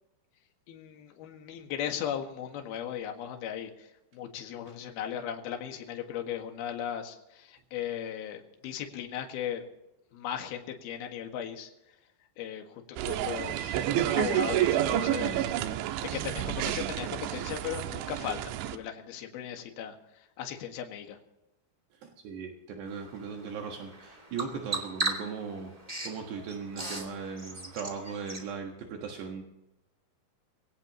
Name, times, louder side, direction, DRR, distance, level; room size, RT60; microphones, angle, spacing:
voice 1, 0.7-9.7 10.1-11.7 12.4-15.4 16.0-21.2, left 9 dB, 60° left, 4 dB, 3.3 m, -37 dB
sound 1, 13.0-18.8, right 12 dB, 85° right, 3.2 m, -29 dB
voice 2, 22.0-25.7 26.0-29.4, right 5 dB, 70° right, 2 dB, 3.5 m, -38 dB
Bird vocalization bird call bird song, 22.9-28.5, right 2 dB, 30° right, 0.6 m, -38 dB
22.5 x 17.0 x 3.0 m, 0.91 s
omnidirectional pair, 5.4 m